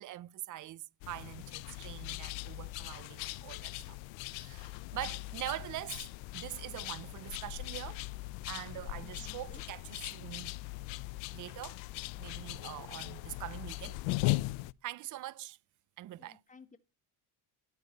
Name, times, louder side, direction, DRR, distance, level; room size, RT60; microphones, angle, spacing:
voice 1, 0.0-4.0 4.2-6.1 6.3-8.0 8.5-10.5 11.3-11.8 12.2-14.0 14.8-15.6 16.0-16.4, right 15 dB, 45° right, 0.5 m, -43 dB
sound 1, 1.0-14.7, left 21 dB, 85° left, 0.7 m, -39 dB
voice 2, 8.7-9.6 16.2-16.8, left 5 dB, 15° left, 1.4 m, -57 dB
13.5 x 11.5 x 4.0 m
cardioid pair, 145°, 44 cm